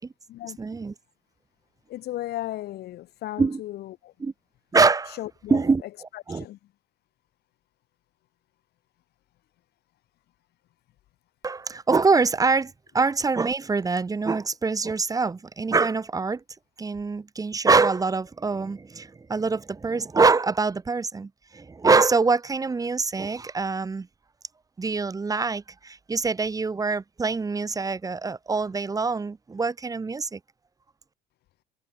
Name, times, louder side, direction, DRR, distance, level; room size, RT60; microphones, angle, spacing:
voice 1, 0.6-0.9 3.4-3.6 4.2-4.3 4.7-5.2 5.5-5.8 6.3-6.4 11.4-16.4 16.8-24.1 24.8-30.4, right 4 dB, 20° right, 1.1 m, -24 dB
voice 2, 1.9-4.1 5.2-5.6 6.1-6.6, left 15 dB, 70° left, 3.0 m, -35 dB
cardioid pair, 110°, 17 cm